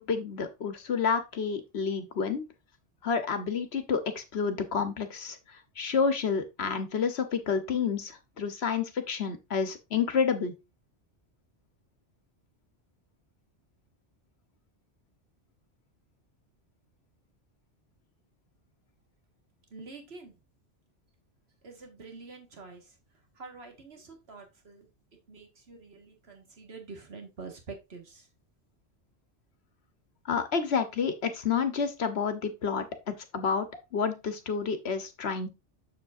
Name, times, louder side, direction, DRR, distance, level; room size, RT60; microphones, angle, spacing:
voice 1, 0.0-2.4 3.0-10.5 30.2-33.7 33.9-35.5, left 6 dB, 65° left, 9 dB, 1.3 m, -29 dB
voice 2, 19.7-20.4 21.6-23.0 23.4-24.9 25.3-28.3, right 4 dB, 60° right, 4 dB, 2.0 m, -46 dB
7.3 x 7.1 x 2.6 m, 0.24 s
omnidirectional pair, 1.2 m